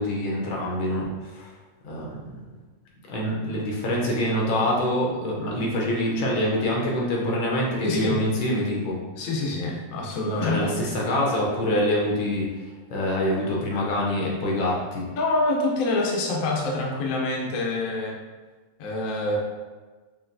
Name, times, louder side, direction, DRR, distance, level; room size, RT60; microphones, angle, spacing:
voice 1, 0.0-1.5 1.8-2.5 3.1-9.0 10.4-12.5 12.9-15.1, left 1 dB, 85° left, -3 dB, 1.7 m, -25 dB
voice 2, 7.8-8.2 9.2-10.7 15.2-18.1 18.8-19.4, left 2 dB, 60° left, -2 dB, 0.9 m, -26 dB
5.3 x 2.7 x 2.6 m, 1.3 s
omnidirectional pair, 2.1 m